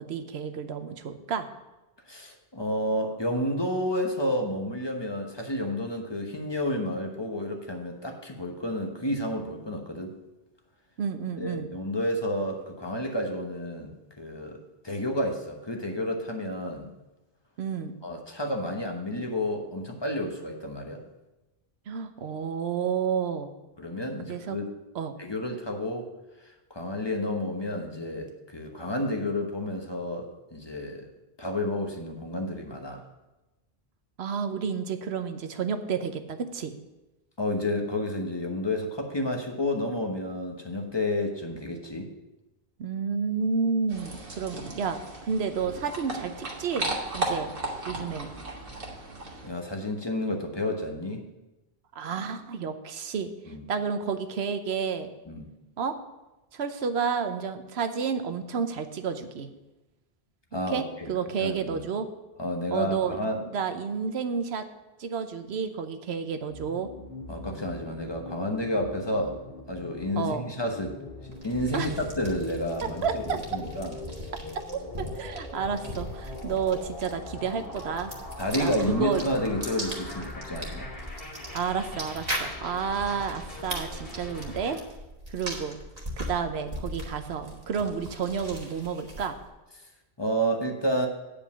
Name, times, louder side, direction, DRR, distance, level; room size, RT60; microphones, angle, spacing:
voice 1, 0.0-1.5 11.0-11.7 17.6-18.0 21.9-23.5 24.3-24.6 24.9-25.2 34.2-36.7 42.8-45.0 45.3-47.5 47.8-48.3 51.9-53.3 53.7-55.1 55.8-56.0 56.5-59.5 60.7-62.1 62.7-63.2 63.5-64.7 65.0-66.9 70.2-70.4 71.7-71.9 72.8-73.6 75.0-78.1 78.6-79.2 81.5-84.8 85.3-85.8 86.2-89.4, right 6 dB, 85° right, 9 dB, 1.0 m, -30 dB
voice 2, 2.1-10.2 11.4-16.9 18.0-21.0 23.8-24.7 25.2-26.1 26.7-31.1 31.4-33.0 37.4-42.1 49.4-51.3 53.5-53.6 55.3-55.5 60.5-61.1 61.4-61.8 62.4-63.4 67.3-69.4 69.7-71.0 71.4-74.0 76.5-76.6 78.4-80.9 90.2-91.1, left 1 dB, 25° left, 2 dB, 1.1 m, -30 dB
sound 1, 43.9-49.5, right 2 dB, 60° right, 1.7 m, -35 dB
sound 2, 66.5-84.8, left 2 dB, 65° left, 2.4 m, -42 dB
sound 3, 71.3-89.5, equal, 40° right, 1.6 m, -39 dB
9.3 x 5.1 x 7.1 m, 1.0 s
omnidirectional pair, 1.1 m